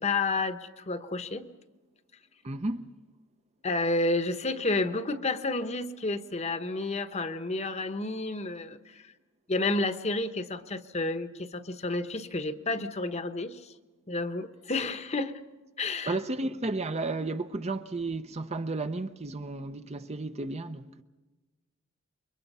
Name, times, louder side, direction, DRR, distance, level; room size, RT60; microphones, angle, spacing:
voice 1, 0.0-1.5 3.6-9.1 9.5-13.7 14.1-15.4 15.8-16.2, left 2 dB, 30° left, 1.1 m, -30 dB
voice 2, 2.4-2.8 16.1-21.0, right 2 dB, 30° right, 0.7 m, -33 dB
29.0 x 23.5 x 5.5 m
head